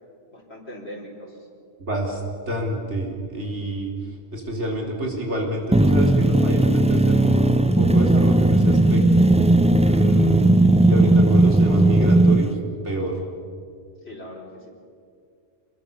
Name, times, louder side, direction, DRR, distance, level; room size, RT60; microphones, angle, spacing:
voice 1, 0.3-1.5 14.0-14.7, equal, 65° left, -2 dB, 4.6 m, -40 dB
voice 2, 1.8-2.2 2.5-3.9 4.3-9.2 9.8-12.5 12.8-13.1, right 1 dB, 85° right, 0 dB, 4.3 m, -28 dB
sound 1, 5.7-12.5, right 1 dB, 10° right, 0.5 m, -16 dB
26.5 x 21.5 x 7.1 m, 2.3 s
omnidirectional pair, 1.2 m